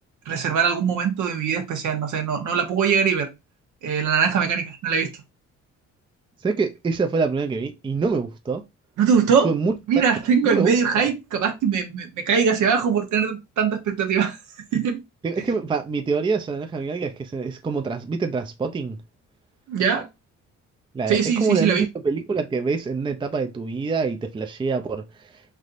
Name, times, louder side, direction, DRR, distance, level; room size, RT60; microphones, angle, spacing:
voice 1, 0.3-3.3 3.8-5.1 9.0-9.5 9.9-14.4 14.7-15.0 19.7-20.1 21.1-21.8, right 6 dB, 80° right, 0.9 m, -22 dB
voice 2, 6.4-8.6 9.4-9.7 10.4-10.8 15.2-19.0 20.9-25.0, right 4 dB, 15° right, 0.4 m, -25 dB
3.3 x 2.7 x 2.5 m
cardioid pair, 90°, 30 cm